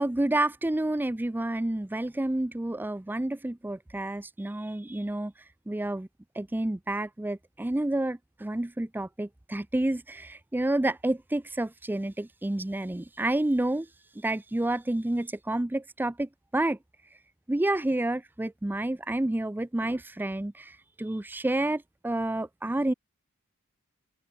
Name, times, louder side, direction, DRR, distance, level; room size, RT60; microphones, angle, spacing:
voice 1, 0.0-5.3 5.7-6.1 6.4-13.9 14.2-16.8 17.5-20.6 21.0-22.9, right 1 dB, 10° right, 0.4 m, -29 dB
open air
head